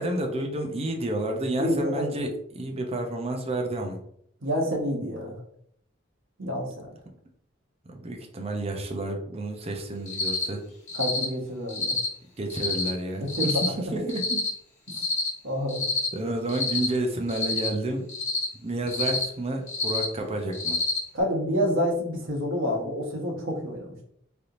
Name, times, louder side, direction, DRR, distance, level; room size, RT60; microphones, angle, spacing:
voice 1, 0.0-4.0 7.9-10.6 12.4-14.4 16.1-18.1 18.5-20.8, right 1 dB, 30° right, 2 dB, 0.6 m, -30 dB
voice 2, 1.6-2.1 4.4-5.4 6.4-6.9 10.9-11.9 13.2-13.9 15.4-15.8 21.1-24.0, equal, 85° right, 0 dB, 1.0 m, -28 dB
Cricket, 10.1-10.4 10.9-11.2 11.7-12.1 12.5-12.9 13.3-13.7 14.1-14.5 14.9-15.3 15.7-16.1 16.5-16.9 17.3-17.7 18.1-18.4 18.9-19.2 19.7-20.0 20.5-21.0, left 4 dB, 40° left, 1.0 m, -28 dB
3.3 x 2.8 x 2.5 m, 0.69 s
head